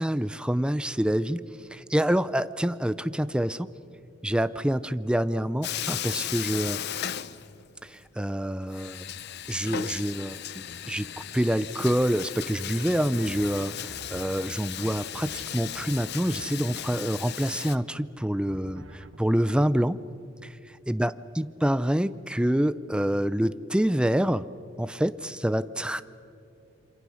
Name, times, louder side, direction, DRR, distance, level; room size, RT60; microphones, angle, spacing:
voice 1, 0.0-1.4 1.7-3.7 4.2-6.8 7.8-9.0 9.5-11.1 11.3-20.0 20.4-20.5 20.9-24.4 24.8-26.0, equal, 5° right, 15 dB, 0.5 m, -27 dB
Bathtub (filling or washing), 5.6-7.9 8.2-8.3 8.7-17.8, left 10 dB, 55° left, 0.7 m, -36 dB
sound 1, 12.9-16.5 18.5-19.2, right 2 dB, 70° right, 1.3 m, -47 dB
27.5 x 25.0 x 6.4 m, 2.6 s
head